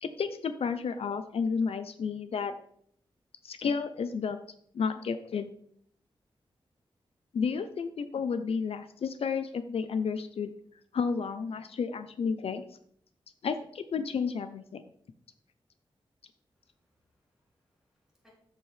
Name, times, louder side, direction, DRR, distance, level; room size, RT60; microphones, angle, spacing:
voice 1, 0.0-2.5 3.4-4.4 4.7-5.5 7.3-10.5 10.9-12.6 13.4-14.8, left 5 dB, 75° left, 10 dB, 0.5 m, -31 dB
voice 2, 16.5-18.3, left 2 dB, 5° right, -4 dB, 3.3 m, -71 dB
13.0 x 4.6 x 3.3 m, 0.65 s
wide cardioid pair, 175°, 10 cm